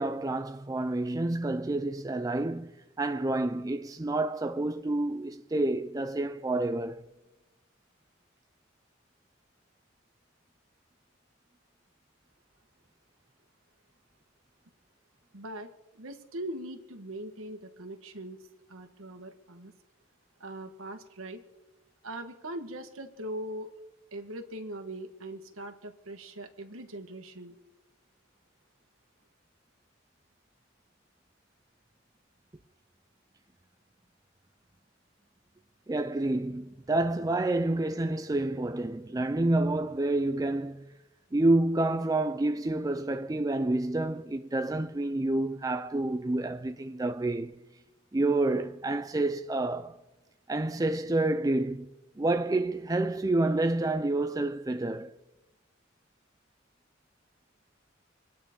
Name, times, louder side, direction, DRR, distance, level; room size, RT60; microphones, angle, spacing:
voice 1, 0.0-2.7 3.0-7.1 35.9-40.9 41.3-47.6 48.1-50.0 50.5-51.9 52.2-55.1, right 2 dB, 15° right, 0.4 m, -28 dB
voice 2, 15.3-18.4 18.7-19.7 20.4-21.4 22.0-23.7 24.1-27.6, right 1 dB, 90° right, 1.4 m, -41 dB
27.5 x 9.4 x 3.7 m
head